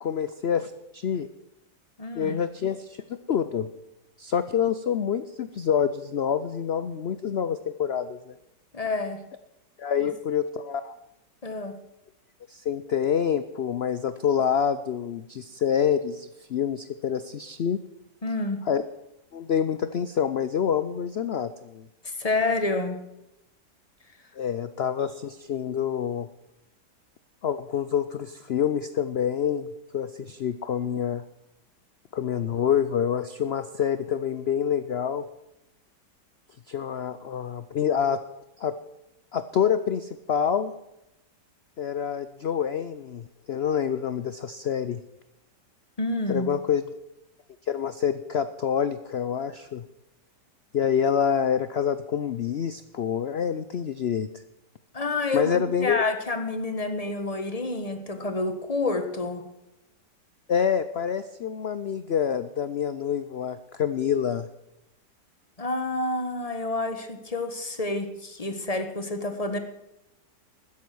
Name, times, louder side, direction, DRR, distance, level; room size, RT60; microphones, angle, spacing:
voice 1, 0.0-1.3 2.2-3.7 4.2-8.3 9.8-10.9 12.5-17.8 18.7-18.8 19.3-21.9 24.4-26.3 27.4-29.7 29.9-31.2 32.1-35.2 36.7-38.2 38.6-38.7 39.3-40.7 41.8-45.0 46.3-46.9 47.7-49.8 50.7-54.3 55.3-56.0 60.5-64.5, left 8 dB, 75° left, 13 dB, 0.5 m, -27 dB
voice 2, 2.0-2.4 8.7-9.2 10.0-10.1 11.4-11.8 18.2-18.6 22.2-23.0 46.0-46.5 54.9-59.4 65.6-69.6, left 2 dB, 20° left, 8 dB, 1.4 m, -28 dB
13.5 x 10.0 x 7.7 m, 0.89 s
omnidirectional pair, 1.9 m